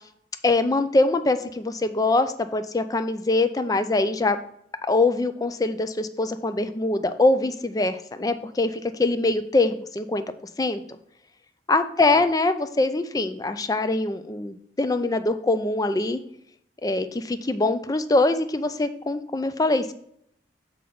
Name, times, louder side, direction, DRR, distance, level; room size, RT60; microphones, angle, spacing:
voice 1, 0.4-4.4 4.9-10.2 10.6-11.0 11.7-16.2 16.8-19.9, left 2 dB, 20° left, 11 dB, 0.4 m, -23 dB
6.4 x 3.9 x 5.8 m, 0.71 s
head